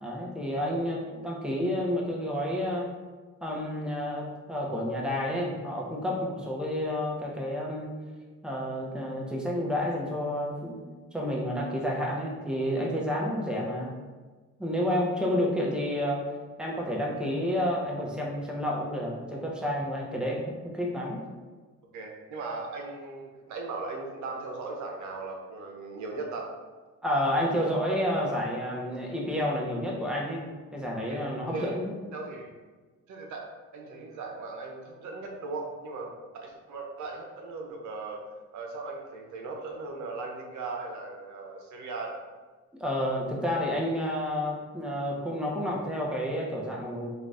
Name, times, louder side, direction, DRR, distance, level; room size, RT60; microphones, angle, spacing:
voice 1, 0.0-2.9 3.4-7.9 8.4-10.7 11.1-13.9 14.6-16.2 16.6-21.2 27.0-30.5 30.7-31.9 42.8-47.1, equal, 5° right, -3 dB, 0.8 m, -30 dB
voice 2, 21.9-26.5 31.1-31.2 31.5-31.8 32.1-32.6 33.1-38.2 38.5-42.2, right 3 dB, 75° right, 1 dB, 0.8 m, -38 dB
3.8 x 2.4 x 3.4 m, 1.4 s
cardioid pair, 90°, 30 cm